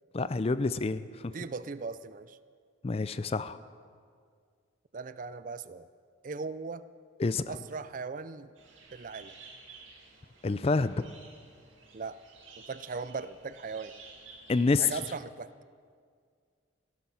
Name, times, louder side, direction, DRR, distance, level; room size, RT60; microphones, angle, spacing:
voice 1, 0.1-1.3 2.8-3.6 7.2-7.4 10.4-11.1 14.5-15.0, left 3 dB, 30° left, 14 dB, 0.4 m, -28 dB
voice 2, 1.3-2.4 4.9-5.9 6.2-6.9 7.5-8.5 8.9-9.3 11.9-12.2 12.7-14.0 14.8-15.5, right 4 dB, 40° right, 14 dB, 0.4 m, -38 dB
sound 1, 8.6-15.1, right 4 dB, 80° right, 2.3 m, -53 dB
16.0 x 12.5 x 5.6 m, 2.1 s
head